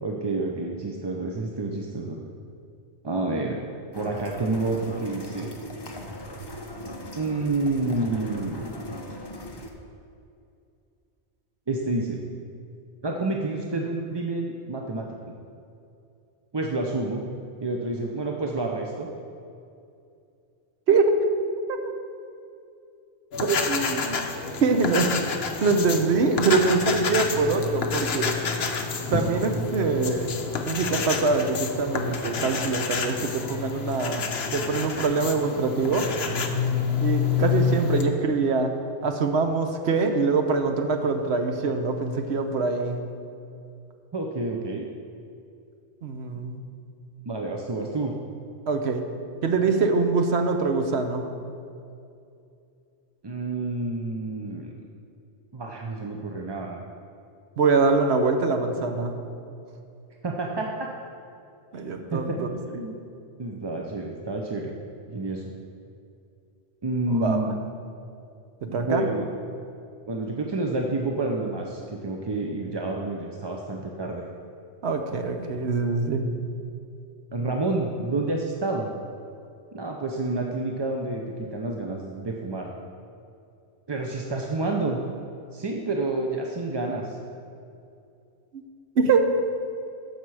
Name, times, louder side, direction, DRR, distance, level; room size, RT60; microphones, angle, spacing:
voice 1, 0.0-2.2 3.0-3.6 4.0-5.5 7.2-8.9 11.7-12.2 13.0-15.1 16.5-17.3 17.6-19.1 44.1-44.9 47.2-48.1 53.2-54.7 55.5-56.8 60.2-60.9 62.1-62.4 62.7-62.9 63.4-64.7 65.1-65.4 66.8-67.6 68.7-69.3 70.1-74.3 75.4-75.6 77.3-78.9 79.7-82.7 83.9-85.0 85.5-87.2, right 2 dB, 30° right, 0 dB, 0.5 m, -29 dB
sound 1, 3.9-9.7, left 1 dB, 25° left, 0.8 m, -39 dB
voice 2, 20.9-21.2 21.7-21.9 23.4-24.3 24.6-25.1 25.6-28.4 29.1-30.3 30.6-34.2 34.5-36.1 37.0-38.7 39.0-43.0 46.0-46.6 48.7-49.0 49.4-51.3 57.6-59.1 61.7-62.5 67.1-67.5 68.6-69.0 74.8-76.2 89.0-89.3, right 4 dB, 75° right, 5 dB, 1.1 m, -24 dB
sound 2, 23.3-38.0, left 5 dB, 65° left, 1.0 m, -28 dB
13.5 x 5.8 x 4.8 m, 2.5 s
omnidirectional pair, 1.1 m